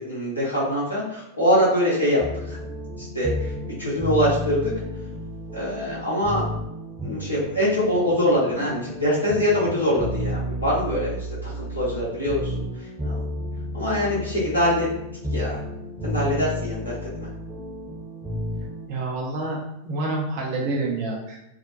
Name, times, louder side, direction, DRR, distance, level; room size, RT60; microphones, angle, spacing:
voice 1, 0.0-2.6 3.0-3.5 3.8-4.7 5.5-6.4 7.0-13.2 13.7-14.9 15.3-15.6 16.0-17.3, equal, 80° left, -7 dB, 0.8 m, -24 dB
sound 1, 2.2-18.9, equal, ahead, 0.9 m, -32 dB
voice 2, 18.9-19.6 19.8-21.5, right 2 dB, 45° right, -1 dB, 0.7 m, -27 dB
2.5 x 2.1 x 2.6 m, 0.84 s
figure-of-eight pair, 90°, 0 cm